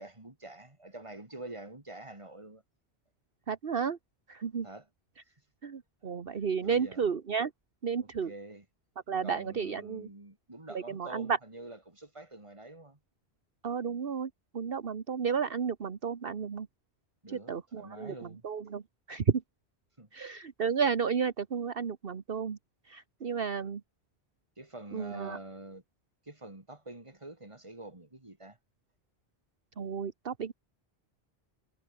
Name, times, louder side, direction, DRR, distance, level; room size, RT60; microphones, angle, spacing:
voice 1, 0.0-2.6 4.6-4.9 6.3-7.0 8.0-8.6 9.2-13.0 17.2-18.4 20.0-20.1 24.6-25.8 26.2-28.6, right 2 dB, 30° right, 3.1 m, -46 dB
voice 2, 3.5-4.0 4.3-4.7 5.6-7.5 7.8-8.3 9.1-10.1 10.7-11.4 13.6-16.7 17.5-18.8 19.1-19.4 20.1-22.6 22.9-23.8 24.9-25.4 29.8-30.5, right 6 dB, 60° right, 1.4 m, -32 dB
omnidirectional pair, 1.1 m